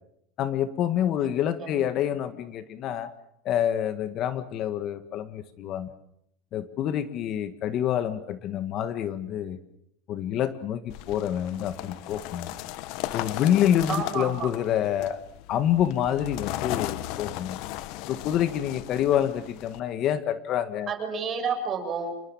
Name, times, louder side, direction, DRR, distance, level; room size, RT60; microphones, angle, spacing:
voice 1, 0.4-3.1 3.5-5.9 6.5-9.6 10.1-12.5 13.1-15.2 15.5-17.6 18.1-20.9, left 10 dB, 45° left, 11 dB, 1.7 m, -27 dB
sound 1, 10.9-19.8, left 15 dB, 60° left, 1.2 m, -36 dB
voice 2, 13.9-14.5 20.9-22.2, right 5 dB, 30° right, 5 dB, 6.7 m, -30 dB
27.5 x 21.5 x 7.4 m, 0.76 s
supercardioid pair, 130°, 0 cm